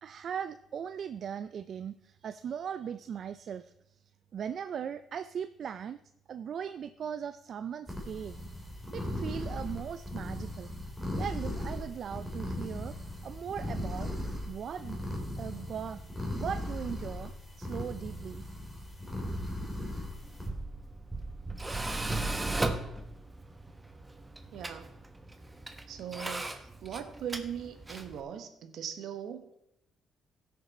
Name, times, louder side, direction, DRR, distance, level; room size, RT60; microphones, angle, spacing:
voice 1, 0.0-3.7 4.3-6.0 6.3-8.4 8.9-10.7 11.2-12.9 13.2-14.1 14.5-15.0 15.4-16.0 16.3-17.3 17.6-18.4, right 8 dB, 60° right, 12 dB, 0.4 m, -38 dB
sound 1, 7.9-20.5, left 1 dB, ahead, 3.1 m, -38 dB
Tools, 20.2-28.2, right 2 dB, 15° right, 1.0 m, -37 dB
voice 2, 24.5-24.9 25.9-29.6, right 9 dB, 75° right, 9 dB, 1.2 m, -40 dB
16.0 x 6.8 x 4.1 m, 0.80 s
cardioid pair, 90°, 0 cm